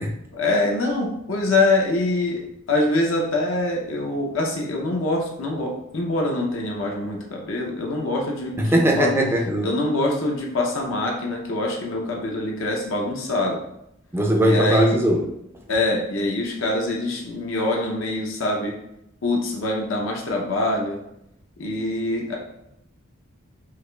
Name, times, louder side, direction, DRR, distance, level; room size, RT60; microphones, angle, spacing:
voice 1, 0.3-2.4 2.7-9.1 9.6-13.6 14.4-14.9 15.7-18.7 19.2-21.0 21.6-22.4, left 2 dB, 65° left, -1 dB, 0.6 m, -24 dB
voice 2, 8.6-9.7 14.1-15.3, equal, 10° right, 1 dB, 0.4 m, -20 dB
4.7 x 2.4 x 2.2 m, 0.81 s
head